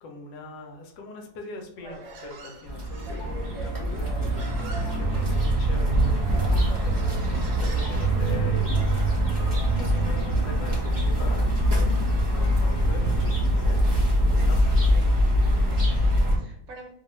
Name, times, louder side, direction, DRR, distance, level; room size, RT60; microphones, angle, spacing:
voice 1, 0.0-4.5 5.0-6.4 6.8-7.0 7.5-8.7 9.7-11.6 12.0-14.0 14.3-14.8, left 3 dB, 75° left, 2 dB, 1.3 m, -42 dB
Human voice, 1.8-8.9, right 2 dB, 75° right, 1.2 m, -44 dB
sound 1, 2.6-16.4, equal, 20° right, 0.6 m, -23 dB
voice 2, 3.0-3.4 14.3-14.6 14.9-16.9, right 1 dB, 60° right, 0 dB, 1.1 m, -47 dB
Piano, 3.2-10.0, equal, 45° left, 1.1 m, -47 dB
3.1 x 2.3 x 2.9 m, 0.70 s
omnidirectional pair, 1.9 m